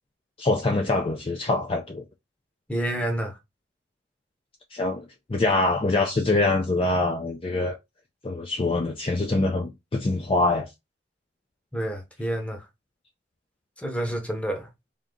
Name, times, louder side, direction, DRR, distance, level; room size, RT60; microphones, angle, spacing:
voice 1, 0.4-2.0 4.7-5.0 5.3-7.8 8.2-10.7, left 2 dB, 30° left, 0.4 m, -24 dB
voice 2, 2.7-3.4 11.7-12.7 13.8-14.7, right 1 dB, 5° left, 0.8 m, -29 dB
3.6 x 2.7 x 3.8 m
head